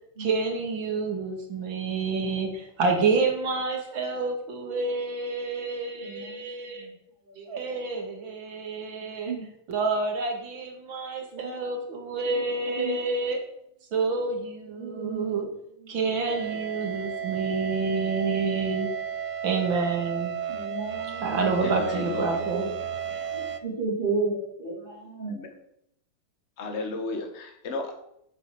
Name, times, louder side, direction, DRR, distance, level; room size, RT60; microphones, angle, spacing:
voice 1, 0.2-6.9 7.4-9.3 9.7-13.4 13.9-15.5 15.9-18.9 19.4-20.4 21.2-22.7, right 4 dB, 75° right, 3 dB, 2.7 m, -28 dB
voice 2, 5.9-6.9 7.3-7.8 9.0-9.5 11.3-11.9 12.2-12.4 12.7-13.0 14.7-15.4 15.8-16.0 17.2-17.3 20.5-21.9 22.5-22.8 23.3-25.3, right 3 dB, 25° right, -4 dB, 3.8 m, -34 dB
sound 1, 16.2-23.6, right 8 dB, 55° right, 0.8 m, -33 dB
voice 3, 21.6-22.4 25.3-25.5 26.6-27.9, left 3 dB, 35° left, 4 dB, 1.6 m, -34 dB
8.1 x 7.5 x 6.8 m, 0.74 s
omnidirectional pair, 2.1 m